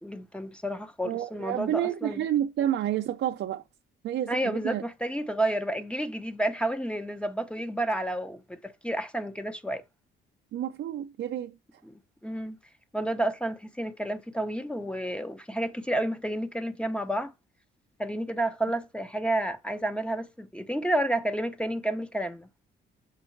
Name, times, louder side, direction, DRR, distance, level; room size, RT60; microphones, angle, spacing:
voice 1, 0.0-2.2 4.3-9.8 11.8-11.9 12.2-12.6 12.9-17.3 18.0-22.5, right 1 dB, 5° left, 1.0 m, -30 dB
voice 2, 1.0-3.6 4.0-4.8 10.5-11.5, right 11 dB, 65° right, 0.6 m, -29 dB
7.4 x 5.3 x 4.6 m
cardioid pair, 90°, 20 cm